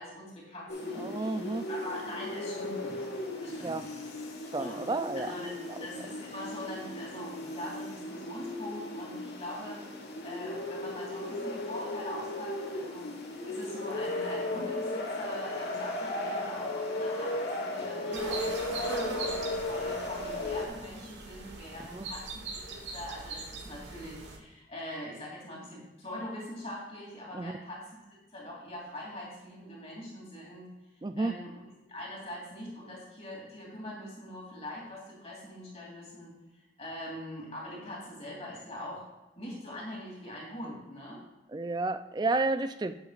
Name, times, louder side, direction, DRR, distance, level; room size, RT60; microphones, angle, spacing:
voice 1, 0.0-3.0 3.4-4.0 4.6-4.8 5.1-9.8 10.2-30.7 31.2-31.6 31.9-39.1 39.4-41.2, left 1 dB, 30° left, -4 dB, 2.9 m, -43 dB
sound 1, 0.7-20.7, left 2 dB, 60° left, 1.4 m, -36 dB
voice 2, 1.0-1.7 3.6-3.8 4.5-5.3 21.9-22.1 27.3-27.6 31.0-31.4 41.5-42.9, right 3 dB, 20° right, 11 dB, 0.3 m, -31 dB
sound 2, 18.1-24.4, right 2 dB, 75° right, 1.3 m, -40 dB
10.0 x 8.0 x 2.5 m, 1.1 s
head